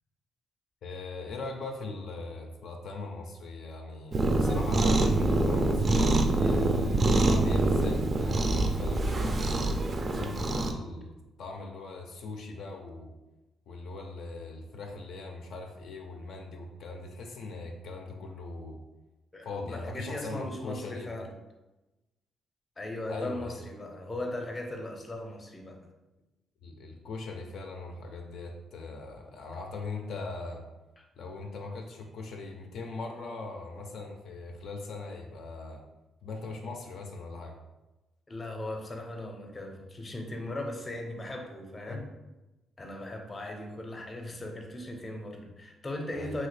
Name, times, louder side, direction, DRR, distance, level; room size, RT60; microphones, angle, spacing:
voice 1, 0.8-9.7 10.1-11.1 11.4-13.1 13.7-18.8 19.4-21.1 23.1-23.6 26.6-30.6 31.2-35.8 36.2-37.6 41.9-42.0 46.2-46.4, left 3 dB, 70° left, 2 dB, 0.4 m, -40 dB
Cat, 4.1-10.7, right 2 dB, 40° right, 0.3 m, -25 dB
voice 2, 19.3-21.3 22.8-25.9 31.0-31.1 38.3-42.1 42.8-46.5, left 1 dB, 25° left, 3 dB, 0.6 m, -38 dB
2.8 x 2.7 x 3.2 m, 1.0 s
cardioid pair, 90°, 0 cm